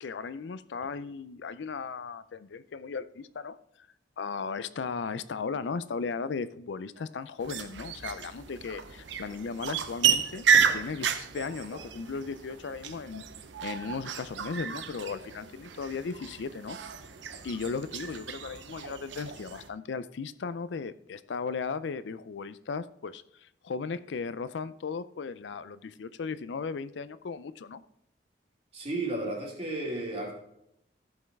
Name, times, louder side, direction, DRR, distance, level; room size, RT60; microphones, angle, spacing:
voice 1, 0.0-3.9 4.2-10.4 10.7-13.2 13.6-16.8 17.4-27.8, left 5 dB, 75° left, 15 dB, 0.4 m, -36 dB
sound 1, 6.9-7.3 8.0-9.4 10.0-10.9 11.2-12.6 13.5-13.6, right 1 dB, 60° right, 2.7 m, -45 dB
sound 2, 7.4-19.7, right 7 dB, 80° right, 0.7 m, -31 dB
voice 2, 28.7-30.3, right 2 dB, 35° right, -2 dB, 2.4 m, -33 dB
14.0 x 5.4 x 3.5 m, 0.77 s
head